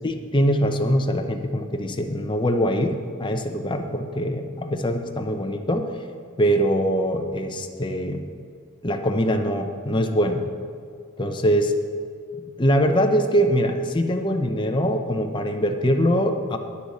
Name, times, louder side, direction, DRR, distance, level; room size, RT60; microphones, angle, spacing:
voice 1, 0.0-2.9 3.2-5.9 6.4-8.2 8.8-10.4 11.2-11.7 12.6-16.6, equal, 20° left, 5 dB, 0.7 m, -23 dB
9.7 x 6.9 x 8.3 m, 2.2 s
head